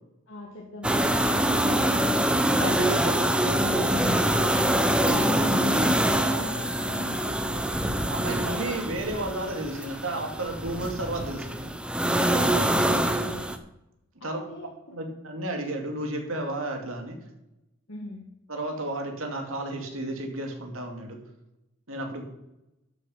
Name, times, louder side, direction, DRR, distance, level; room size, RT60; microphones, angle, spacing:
voice 1, 0.3-2.3 5.1-7.2 12.5-13.5 14.2-15.0 17.9-18.2, left 2 dB, 65° left, -1 dB, 1.7 m, -41 dB
sound 1, 0.8-13.6, right 1 dB, 5° right, 0.7 m, -25 dB
voice 2, 2.5-5.3 8.1-11.7 14.2-14.4 14.9-17.2 18.5-21.2 21.9-22.2, right 1 dB, 75° right, 2 dB, 2.4 m, -33 dB
12.5 x 6.5 x 5.6 m, 0.89 s
head